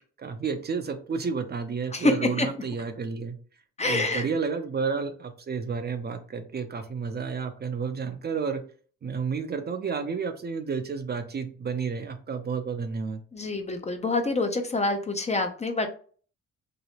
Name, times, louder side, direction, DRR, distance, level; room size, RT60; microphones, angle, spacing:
voice 1, 0.2-3.4 3.8-8.6 9.0-13.2, right 5 dB, 35° right, 7 dB, 0.5 m, -31 dB
voice 2, 1.9-2.5 3.8-4.2 13.3-15.9, left 2 dB, 20° left, 6 dB, 0.5 m, -26 dB
3.0 x 3.0 x 2.8 m, 0.42 s
cardioid pair, 90°, 30 cm